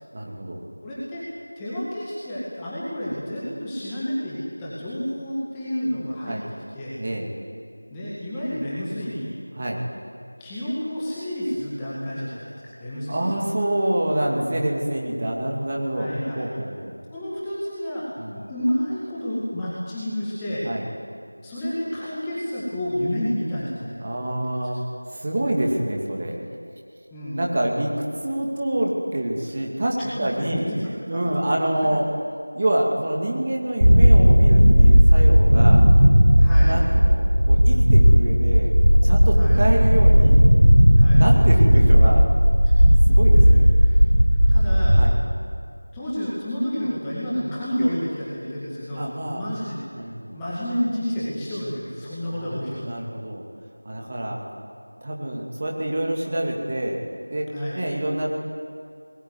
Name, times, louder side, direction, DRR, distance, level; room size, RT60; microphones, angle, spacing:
voice 1, 0.1-0.6 6.3-6.4 7.0-7.3 9.6-9.8 13.1-17.0 18.2-18.4 20.6-20.8 24.0-24.8 25.1-26.4 27.3-27.9 28.2-30.7 31.1-32.0 32.5-35.9 36.6-38.7 39.0-40.4 41.1-42.2 43.1-43.6 45.0-45.2 49.0-49.5 49.9-50.4 52.3-53.4 53.8-54.4 55.0-57.0 57.3-57.5 57.7-58.3, right 1 dB, 20° right, -1 dB, 2.5 m, -26 dB
voice 2, 0.8-1.2 1.6-6.4 6.7-7.0 7.9-9.3 10.4-13.3 16.0-16.5 17.1-20.6 21.4-24.0 24.3-24.4 27.1-27.4 30.0-31.1 31.7-31.9 36.4-36.7 39.4-39.6 40.9-41.2 42.7-42.8 43.4-44.0 44.5-45.0 45.9-49.0 49.3-49.8 50.3-53.0 57.5-57.8, equal, 5° left, -9 dB, 2.1 m, -30 dB
sound 1, 33.8-45.0, equal, 75° right, 5.4 m, -14 dB
27.0 x 21.0 x 9.8 m, 2.2 s
figure-of-eight pair, 175°, 0 cm